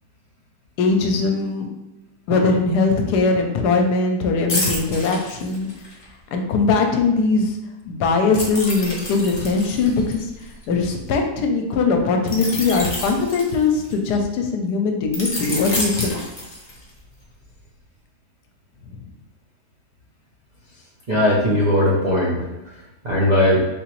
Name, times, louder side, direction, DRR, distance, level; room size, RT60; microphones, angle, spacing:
voice 1, 0.8-1.7 2.3-5.7 6.3-7.6 7.9-10.3 10.7-16.2, left 4 dB, 75° left, 3 dB, 1.1 m, -20 dB
sound 1, 4.5-6.0 8.3-11.1 12.3-14.1 15.1-17.0 17.4-17.6, left 1 dB, 35° left, 0.7 m, -29 dB
voice 2, 21.1-22.5 23.0-23.7, left 1 dB, 65° right, -6 dB, 0.4 m, -18 dB
3.8 x 2.9 x 3.0 m, 1.0 s
omnidirectional pair, 1.8 m